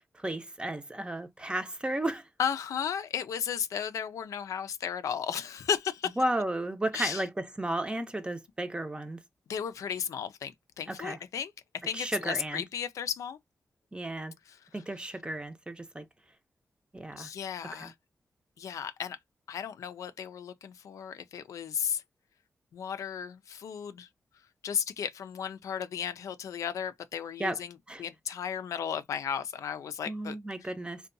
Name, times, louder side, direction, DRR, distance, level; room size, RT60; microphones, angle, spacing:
voice 1, 0.0-2.3 6.2-9.2 11.0-11.2 11.9-12.6 13.9-14.3 14.7-16.1 16.9-17.3 17.7-17.9 27.4-27.6 27.9-28.0 30.1-31.0, right 1 dB, 20° right, 0.6 m, -33 dB
voice 2, 2.4-6.2 6.9-7.2 9.5-11.5 11.8-13.4 14.5-14.6 17.1-17.9 18.6-19.2 19.5-22.0 22.7-24.1 24.6-30.4, left 8 dB, 85° left, 0.4 m, -34 dB
2.6 x 2.2 x 2.5 m
cardioid pair, 55°, 5 cm